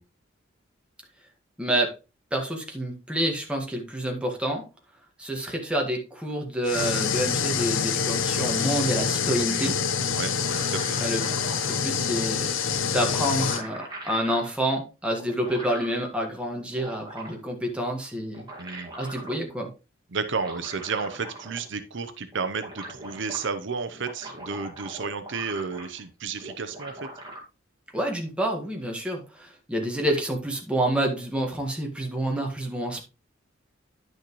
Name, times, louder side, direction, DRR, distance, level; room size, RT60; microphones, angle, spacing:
voice 1, 1.6-1.9 2.3-4.6 5.2-9.8 11.0-11.3 11.6-12.6 12.9-18.5 19.0-19.7 27.9-33.0, right 1 dB, 5° right, 1 dB, 1.7 m, -28 dB
sound 1, 6.7-13.6, left 6 dB, 75° left, 0.8 m, -26 dB
sound 2, 10.1-11.8 12.8-12.9 13.1-14.5 15.2-16.0 16.5-17.5 18.2-19.4 20.3-21.7 22.0-22.1 22.3-23.5 23.9-26.1 26.4-27.4, right 2 dB, 20° right, 2.0 m, -41 dB
voice 2, 10.6-11.0 18.6-18.9 20.1-27.0, right 5 dB, 65° right, 10 dB, 0.7 m, -32 dB
10.0 x 6.3 x 3.1 m, 0.29 s
head